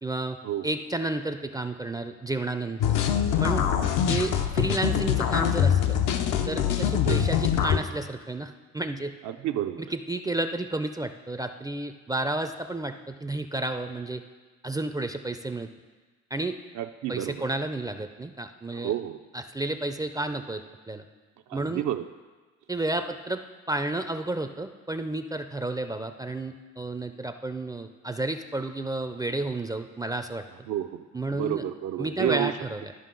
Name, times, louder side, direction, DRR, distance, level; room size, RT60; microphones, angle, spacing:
voice 1, 0.0-0.4 0.6-2.8 3.4-3.7 4.1-6.0 6.5-9.1 9.9-14.2 14.6-15.7 16.3-16.6 17.1-18.9 19.3-21.0 21.5-21.8 22.7-23.4 23.7-30.4 31.1-31.6 32.0-32.9, right 2 dB, 15° right, 7 dB, 0.3 m, -31 dB
sound 1, 2.8-7.8, left 9 dB, 80° left, 0.6 m, -24 dB
voice 2, 9.2-9.9 16.7-17.4 18.7-19.2 21.5-22.1 30.7-31.0 31.3-32.5, right 12 dB, 70° right, 6 dB, 0.5 m, -30 dB
12.5 x 5.1 x 3.8 m, 1.3 s
cardioid pair, 90°, 30 cm